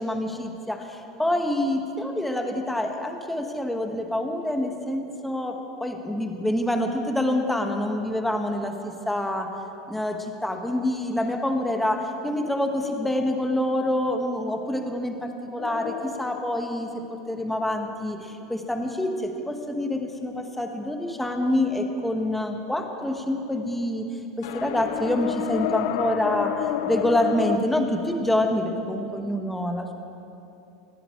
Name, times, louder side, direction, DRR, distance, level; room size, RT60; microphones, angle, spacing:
voice 1, 0.0-9.5 9.9-16.9 17.3-24.0 24.4-29.9, left 1 dB, 5° left, 3 dB, 1.8 m, -26 dB
sound 1, 15.6-17.9 24.4-27.6, left 12 dB, 70° left, 0.6 m, -30 dB
26.0 x 10.0 x 4.7 m, 2.8 s
hypercardioid pair, 95°, 3 cm